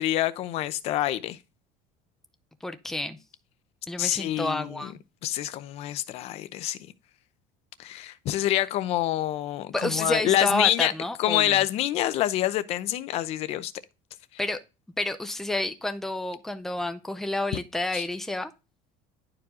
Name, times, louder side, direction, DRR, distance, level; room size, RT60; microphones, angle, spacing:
voice 1, 0.0-1.4 4.0-4.9 5.2-6.8 7.8-10.9 11.2-13.7 17.9-18.1, left 13 dB, 45° left, 0.7 m, -26 dB
voice 2, 2.6-3.2 3.9-4.9 9.7-11.6 14.4-14.6 15.0-18.5, left 1 dB, ahead, 0.5 m, -29 dB
11.0 x 4.8 x 3.7 m
cardioid pair, 175°, 15 cm